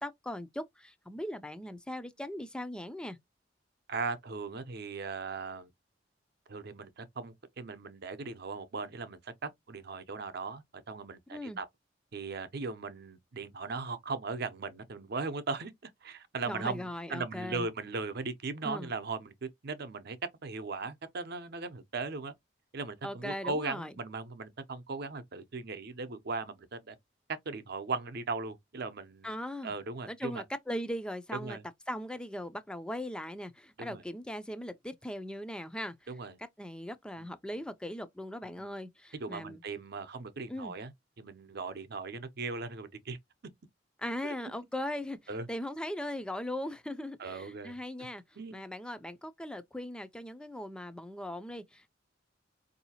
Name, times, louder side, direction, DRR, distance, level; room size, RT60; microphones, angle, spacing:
voice 1, 0.0-3.2 11.3-11.6 16.5-17.7 18.6-18.9 23.0-23.9 29.2-29.7 30.1-31.6 31.9-35.9 36.6-39.6 40.5-40.7 44.0-45.2 45.5-48.2 48.5-51.9, left 1 dB, 5° left, 0.4 m, -39 dB
voice 2, 3.9-5.7 6.5-11.7 12.1-20.2 20.4-22.3 22.7-27.0 27.5-29.3 29.6-30.4 31.4-31.6 33.8-34.0 36.1-36.3 37.2-37.3 38.6-38.7 39.2-43.2 44.2-44.3 45.3-45.5 47.2-47.8 48.4-48.6, right 4 dB, 60° right, 0.7 m, -38 dB
4.6 x 2.7 x 2.8 m
head